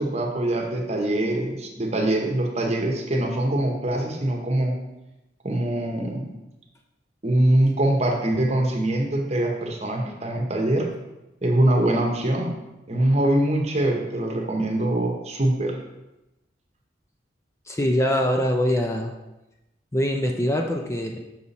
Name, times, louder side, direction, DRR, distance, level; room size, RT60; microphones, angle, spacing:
voice 1, 0.0-4.8 5.4-6.3 7.2-10.9 11.4-12.5 12.9-15.7, right 1 dB, 35° right, 1 dB, 1.0 m, -23 dB
voice 2, 17.7-19.1 19.9-21.2, equal, 15° left, 2 dB, 0.5 m, -23 dB
6.1 x 5.5 x 4.1 m, 0.98 s
head